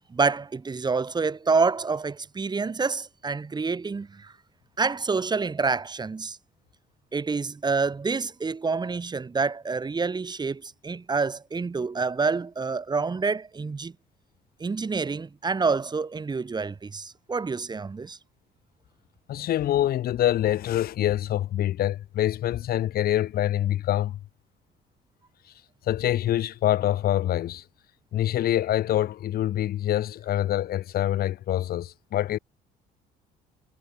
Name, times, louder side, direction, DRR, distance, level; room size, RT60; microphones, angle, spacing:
voice 1, 0.1-4.3 4.8-6.4 7.1-13.9 14.6-18.2, right 4 dB, 25° right, 5.2 m, -27 dB
voice 2, 19.3-24.2 25.9-27.6 28.1-32.4, left 12 dB, 65° left, 2.1 m, -25 dB
cardioid pair, 110°, 17 cm